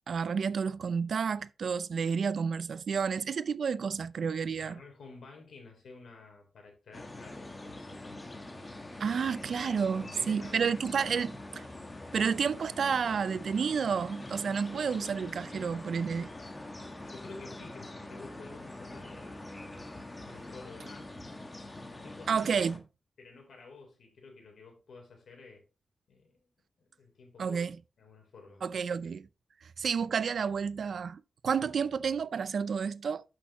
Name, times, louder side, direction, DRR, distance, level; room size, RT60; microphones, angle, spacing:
voice 1, 0.0-4.8 9.0-11.3 12.1-16.3 22.3-22.8 27.4-27.8 28.6-29.3 29.8-33.2, right 6 dB, 70° right, 0.5 m, -30 dB
voice 2, 4.6-8.2 9.9-11.2 17.0-19.4 20.2-21.1 21.9-22.5 23.2-25.6 26.1-26.5 26.8-27.6 28.0-28.6, left 3 dB, 90° left, 3.7 m, -51 dB
sound 1, 6.9-22.8, left 2 dB, 20° left, 1.3 m, -44 dB
11.0 x 6.5 x 3.0 m
wide cardioid pair, 150°, 0 cm